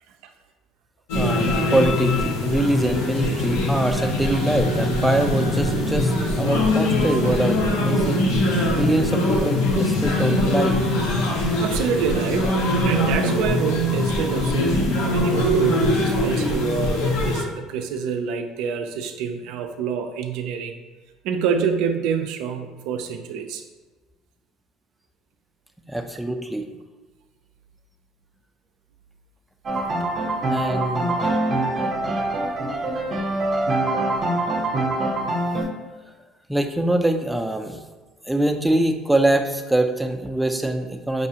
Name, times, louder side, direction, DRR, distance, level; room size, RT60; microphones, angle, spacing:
sound 1, 1.1-17.4, left 1 dB, 90° left, 0.7 m, -22 dB
voice 1, 1.1-8.3 8.8-10.8 25.9-26.6 30.5-31.3 36.5-37.8 38.3-41.3, right 1 dB, 5° right, 5 dB, 0.4 m, -24 dB
voice 2, 11.6-12.6 12.8-20.8 21.2-23.6 30.5-30.6, right 6 dB, 75° right, 6 dB, 0.4 m, -27 dB
sound 2, 29.7-35.6, right 2 dB, 40° right, 0.7 m, -24 dB
5.4 x 2.4 x 2.8 m, 1.3 s
supercardioid pair, 85°, 0 cm